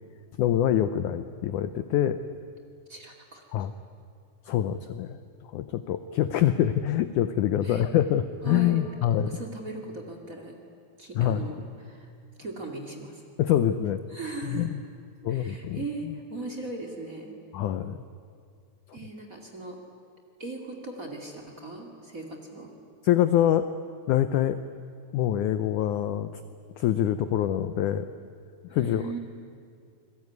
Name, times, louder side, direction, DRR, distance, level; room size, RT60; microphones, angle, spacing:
voice 1, 0.4-2.2 3.5-3.7 4.5-5.2 5.5-9.3 11.2-11.5 13.4-14.0 14.4-14.8 15.2-16.1 17.5-18.0 23.0-23.7 24.1-24.6 25.1-26.3 26.8-28.1 28.7-29.0, left 11 dB, 85° left, 11 dB, 1.7 m, -25 dB
voice 2, 2.9-3.7 7.6-7.9 8.4-8.9 9.2-10.6 11.0-12.1 12.4-13.2 14.1-14.7 15.3-17.3 18.9-19.8 20.4-22.7 28.7-29.2, right 2 dB, 25° right, 3 dB, 2.3 m, -38 dB
27.5 x 21.0 x 9.5 m, 2.3 s
omnidirectional pair, 4.5 m